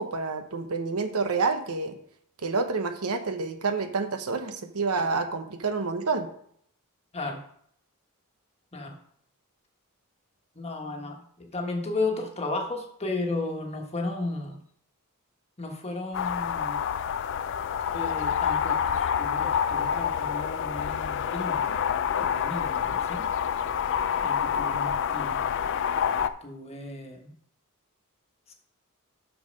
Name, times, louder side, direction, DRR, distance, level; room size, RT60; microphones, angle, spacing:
voice 1, 0.0-2.0 2.4-6.3, right 4 dB, 85° right, 7 dB, 0.9 m, -28 dB
voice 2, 10.5-14.6 15.6-16.8 17.9-21.7 22.1-23.3 24.2-25.5 26.2-27.3 28.5-28.6, left 2 dB, 30° left, 2 dB, 1.3 m, -34 dB
sound 1, 16.1-26.3, left 8 dB, 55° left, 0.4 m, -27 dB
6.6 x 6.3 x 5.2 m, 0.66 s
head